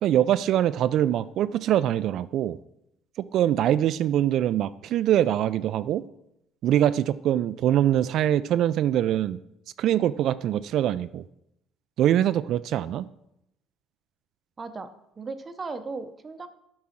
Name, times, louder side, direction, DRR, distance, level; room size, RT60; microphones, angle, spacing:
voice 1, 0.0-2.6 3.2-6.1 6.6-9.4 9.8-11.2 12.0-13.1, right 11 dB, 65° right, 15 dB, 0.3 m, -23 dB
voice 2, 14.6-14.9 15.2-16.5, right 4 dB, 30° right, 9 dB, 0.7 m, -36 dB
8.7 x 4.8 x 5.8 m, 0.81 s
supercardioid pair, 95°, 0 cm